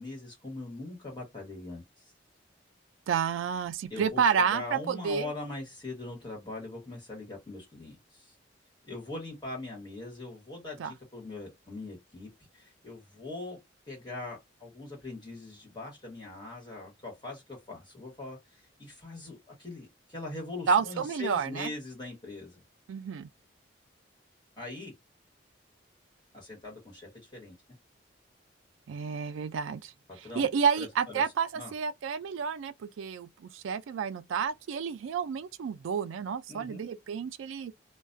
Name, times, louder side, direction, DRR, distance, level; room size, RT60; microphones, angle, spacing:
voice 1, 0.0-2.1 3.9-8.3 8.8-13.6 13.9-22.6 24.6-24.9 26.3-27.5 30.2-30.5 30.8-31.2 31.5-31.7 36.5-36.8, left 2 dB, 20° left, 1.2 m, -41 dB
voice 2, 3.1-5.3 10.8-10.9 20.7-21.7 22.9-23.3 28.9-29.9 30.4-37.7, right 6 dB, 85° right, 0.3 m, -30 dB
2.3 x 2.2 x 2.5 m
head